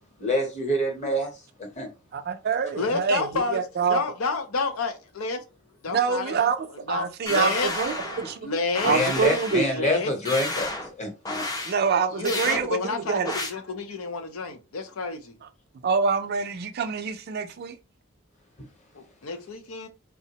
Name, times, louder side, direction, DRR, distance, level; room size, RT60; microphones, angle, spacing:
voice 1, 0.2-1.3 1.6-1.9 8.8-10.7 11.0-11.4, left 1 dB, 35° left, 0.8 m, -26 dB
voice 2, 2.1-4.0 5.9-8.5 8.8-9.9 11.6-13.3 15.8-17.8, right 5 dB, 50° right, 0.4 m, -26 dB
voice 3, 2.7-3.6 3.9-5.4 5.8-6.5 6.9-7.7 8.4-8.9 9.7-10.1 12.1-15.3 18.9-19.9, left 4 dB, 90° left, 0.6 m, -29 dB
sound 1, 7.3-8.4 8.8-9.7 10.3-10.9 11.3-11.7 12.3-12.6 13.3-13.5, left 2 dB, 20° left, 0.4 m, -31 dB
3.4 x 2.0 x 2.8 m
head